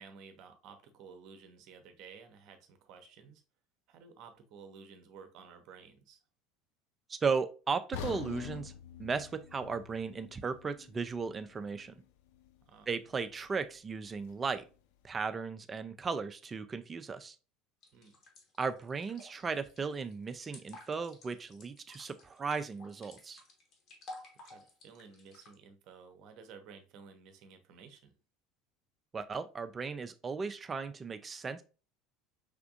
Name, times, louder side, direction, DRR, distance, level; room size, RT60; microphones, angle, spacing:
voice 1, 0.0-3.4 3.9-6.2 12.7-12.9 17.9-18.1 24.3-28.1, right 5 dB, 50° right, 0.8 m, -54 dB
voice 2, 7.1-8.7 9.0-12.0 12.9-14.7 15.0-17.4 18.6-23.4 29.1-31.6, right 5 dB, 25° right, 0.5 m, -36 dB
sound 1, 7.9-12.0 12.3-12.5 13.1-13.2, left 10 dB, 60° left, 0.4 m, -45 dB
sound 2, 17.8-25.5, left 2 dB, 45° left, 1.3 m, -53 dB
5.1 x 3.4 x 2.5 m
figure-of-eight pair, 70°, 0 cm